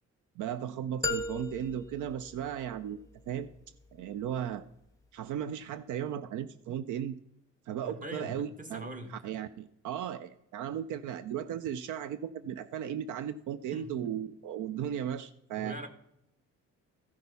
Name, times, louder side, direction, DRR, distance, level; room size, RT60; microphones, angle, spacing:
voice 1, 0.4-3.0 3.3-3.5 3.9-4.6 5.1-7.2 7.7-15.8, right 9 dB, 80° right, 14 dB, 0.6 m, -36 dB
sound 1, 1.0-3.1, left 3 dB, 10° left, 1.0 m, -37 dB
voice 2, 7.8-9.1 13.7-14.1 15.6-15.9, equal, 25° right, 6 dB, 1.7 m, -42 dB
14.0 x 6.1 x 5.4 m, 0.80 s
cardioid pair, 90°, 30 cm